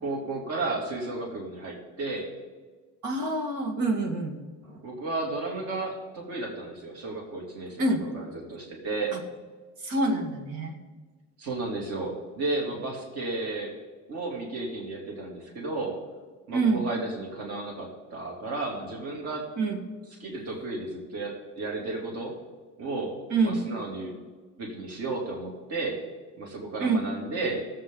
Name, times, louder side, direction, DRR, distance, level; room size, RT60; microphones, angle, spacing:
voice 1, 0.0-2.3 4.8-9.1 11.4-13.7 14.1-15.9 16.5-19.5 20.2-22.3 22.8-24.1 24.6-26.0 26.4-27.7, right 3 dB, 50° right, -1 dB, 2.7 m, -33 dB
voice 2, 3.0-4.4 7.8-8.0 9.1-9.2 9.8-10.7 16.5-16.8 19.6-19.8 23.3-23.6 26.8-27.0, right 3 dB, 65° right, 4 dB, 2.0 m, -26 dB
19.5 x 7.7 x 3.8 m, 1.4 s
cardioid pair, 125°, 32 cm